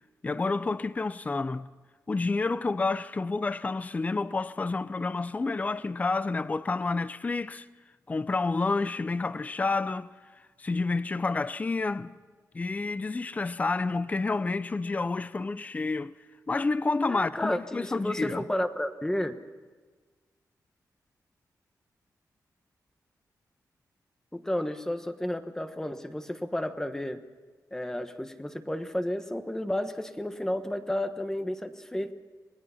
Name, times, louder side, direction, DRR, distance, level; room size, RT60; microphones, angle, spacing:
voice 1, 0.2-1.7 2.1-7.7 8.1-10.1 10.6-12.1 12.5-16.1 16.5-18.5, left 3 dB, 25° left, 0.6 m, -29 dB
voice 2, 17.1-19.4 24.3-27.2 27.7-32.1, left 1 dB, 10° left, 1.2 m, -32 dB
27.5 x 20.5 x 5.7 m
wide cardioid pair, 165°, 7 cm